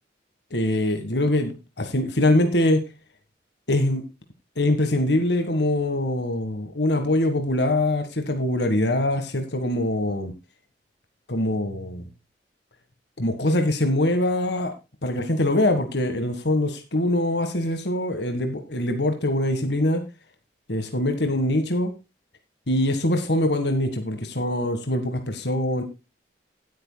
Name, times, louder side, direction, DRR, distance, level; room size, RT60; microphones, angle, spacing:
voice 1, 0.5-2.8 3.7-4.0 4.6-10.3 11.3-12.1 13.2-14.7 15.0-20.0 20.7-21.9 22.7-25.8, left 1 dB, 70° left, 6 dB, 1.7 m, -23 dB
17.0 x 9.2 x 2.3 m, 0.26 s
head